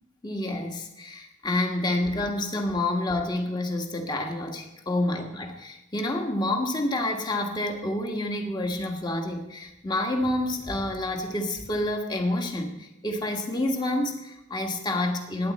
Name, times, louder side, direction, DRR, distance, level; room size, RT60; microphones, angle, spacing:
voice 1, 0.2-15.5, left 1 dB, 25° left, 3 dB, 1.5 m, -28 dB
20.5 x 9.3 x 4.3 m, 0.89 s
head